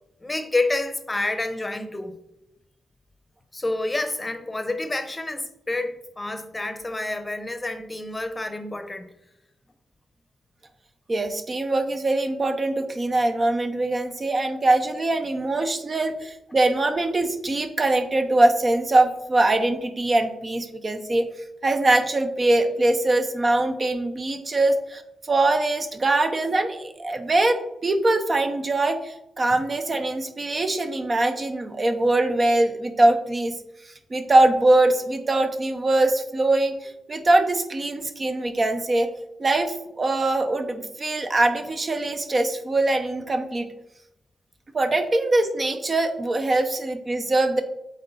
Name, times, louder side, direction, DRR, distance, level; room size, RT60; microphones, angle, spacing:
voice 1, 0.2-2.2 3.5-9.1, left 2 dB, 20° left, 8 dB, 0.8 m, -28 dB
voice 2, 11.1-21.3 21.6-33.6 34.1-39.1 39.4-43.7 44.7-47.6, right 2 dB, 40° right, 7 dB, 0.8 m, -22 dB
7.9 x 3.7 x 4.1 m, 0.86 s
cardioid pair, 65°, 0 cm